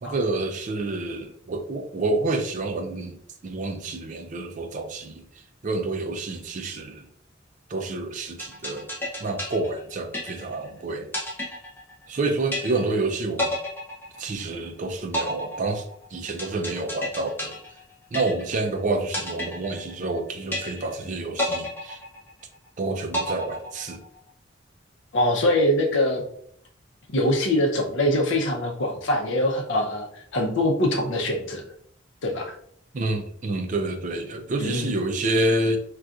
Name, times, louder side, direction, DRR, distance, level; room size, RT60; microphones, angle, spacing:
voice 1, 0.0-5.3 5.6-7.1 7.7-8.9 9.2-11.1 12.1-13.6 14.2-17.6 18.1-22.0 22.8-24.0 32.9-35.8, right 2 dB, 40° right, 6 dB, 0.4 m, -28 dB
sound 1, 8.4-10.7 11.1-12.2 12.5-13.1 13.4-14.7 15.1-18.7 19.1-20.2 20.5-21.1 21.4-22.7 23.1-24.2, left 1 dB, 10° left, 0.6 m, -31 dB
voice 2, 25.1-26.2 27.1-30.1 30.3-31.6 32.2-32.5 34.6-34.9, left 1 dB, 65° left, 1 dB, 0.6 m, -23 dB
3.9 x 2.3 x 2.4 m, 0.65 s
head